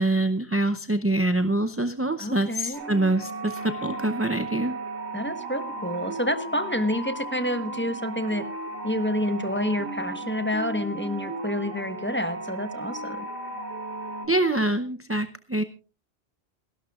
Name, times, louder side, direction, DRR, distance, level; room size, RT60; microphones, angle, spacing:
voice 1, 0.0-4.7 14.2-15.6, right 2 dB, 15° right, 9 dB, 0.5 m, -25 dB
voice 2, 2.2-2.8 5.1-8.5 8.8-13.2, left 1 dB, 10° left, 9 dB, 1.1 m, -28 dB
sound 1, 2.7-14.3, right 2 dB, 90° right, 3.7 m, -35 dB
28.0 x 12.0 x 2.4 m, 0.34 s
omnidirectional pair, 1.1 m